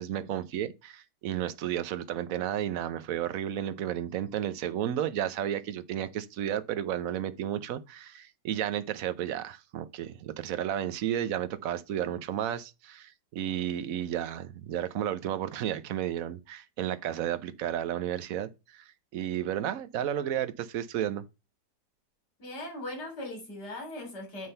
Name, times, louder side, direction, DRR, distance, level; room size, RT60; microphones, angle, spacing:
voice 1, 0.0-18.8 19.1-21.2, right 10 dB, 60° right, 1.1 m, -32 dB
voice 2, 22.4-24.5, left 1 dB, 75° left, 4.3 m, -39 dB
9.5 x 3.7 x 5.6 m
omnidirectional pair, 1.8 m